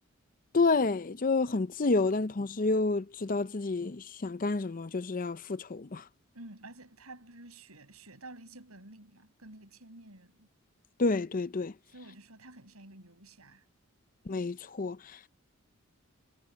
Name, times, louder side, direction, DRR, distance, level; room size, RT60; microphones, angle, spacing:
voice 1, 0.5-6.1 11.0-11.7 14.3-15.3, left 3 dB, 40° left, 0.6 m, -29 dB
voice 2, 6.3-10.5 11.9-13.6, right 2 dB, 85° right, 6.5 m, -51 dB
head